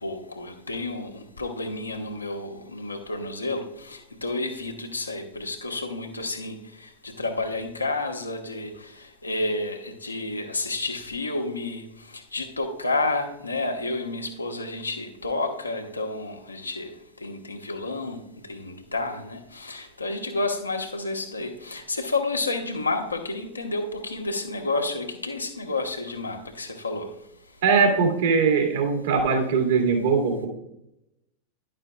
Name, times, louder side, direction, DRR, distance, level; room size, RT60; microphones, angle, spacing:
voice 1, 0.0-11.8 12.1-16.9 17.2-18.2 18.5-27.1, left 2 dB, 80° left, 3 dB, 1.2 m, -30 dB
voice 2, 27.6-30.5, right 5 dB, 60° right, 2 dB, 2.1 m, -21 dB
11.0 x 8.8 x 2.3 m, 0.83 s
figure-of-eight pair, 90°, 0 cm